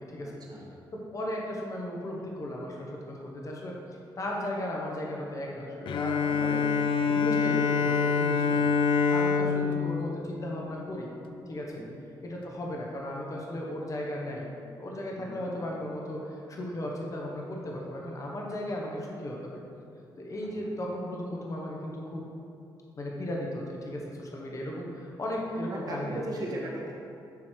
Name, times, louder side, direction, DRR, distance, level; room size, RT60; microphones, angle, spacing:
voice 1, 0.2-0.7 6.3-7.3 8.5-8.6 11.8-12.0 15.2-15.5 20.6-20.7 25.7-26.9, right 1 dB, 50° right, -3 dB, 1.4 m, -39 dB
voice 2, 0.9-3.8 4.2-6.6 7.1-8.6 9.1-11.1 11.5-11.8 12.2-14.5 14.8-19.6 20.2-22.2 23.0-26.5, left 1 dB, 40° left, -2 dB, 1.1 m, -36 dB
Bowed string instrument, 5.9-11.3, left 5 dB, 75° left, 0.4 m, -26 dB
9.4 x 3.2 x 4.5 m, 2.7 s
cardioid pair, 90°, 9 cm